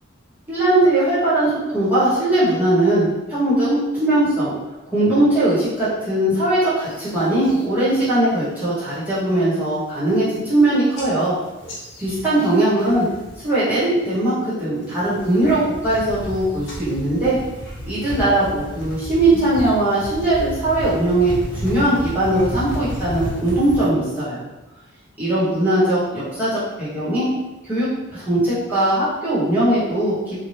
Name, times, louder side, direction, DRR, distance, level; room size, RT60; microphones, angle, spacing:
voice 1, 0.5-4.5 4.9-11.3 12.0-13.1 13.4-17.4 17.9-21.3 21.6-24.4 25.2-27.3 27.6-30.5, right 1 dB, 10° right, -12 dB, 1.2 m, -19 dB
sound 1, 6.8-7.6 8.0-8.4 8.8-9.2 9.6-9.7 9.9-10.6 10.9-13.5 13.8-14.3 14.8-23.9, equal, 55° left, 0.9 m, -32 dB
2.7 x 2.3 x 3.2 m, 1.1 s
head